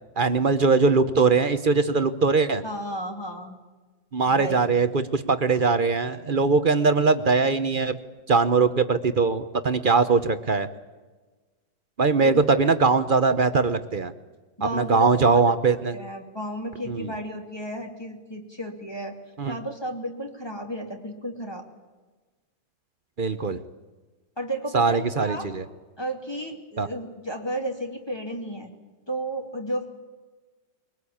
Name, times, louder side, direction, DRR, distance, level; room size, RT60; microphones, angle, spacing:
voice 1, 0.2-2.6 4.1-8.0 8.3-10.7 12.0-14.1 14.6-15.9 16.9-17.1 19.4-19.6 23.2-23.6 24.7-25.6 26.8-26.9, right 4 dB, 45° right, 11 dB, 0.7 m, -21 dB
voice 2, 2.6-3.6 4.3-4.6 12.2-12.4 14.6-15.4 15.7-19.2 19.5-21.7 24.4-25.5 26.0-28.7 29.1-29.9, right 1 dB, 15° left, 2 dB, 2.5 m, -33 dB
23.5 x 19.0 x 8.6 m, 1.3 s
omnidirectional pair, 2.0 m